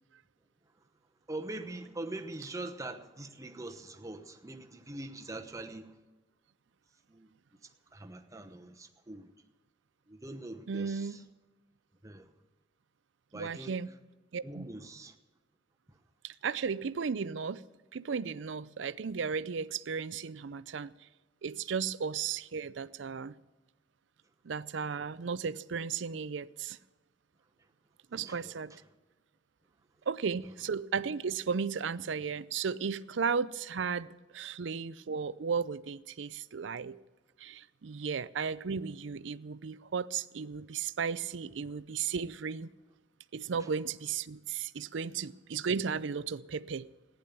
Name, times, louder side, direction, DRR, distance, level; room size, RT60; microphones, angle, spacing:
voice 1, 1.3-5.9 7.1-7.3 7.9-9.3 10.1-11.2 12.0-12.3 13.3-13.7 14.4-15.1 28.1-28.6, right 2 dB, 15° right, 1.0 m, -43 dB
voice 2, 10.7-11.2 13.3-13.9 14.3-14.7 16.2-17.6 17.9-20.9 21.4-23.3 24.4-26.8 28.1-28.7 30.1-34.1 34.3-37.0 37.4-42.7 43.3-46.9, right 6 dB, 70° right, 0.5 m, -35 dB
15.0 x 10.5 x 7.0 m
head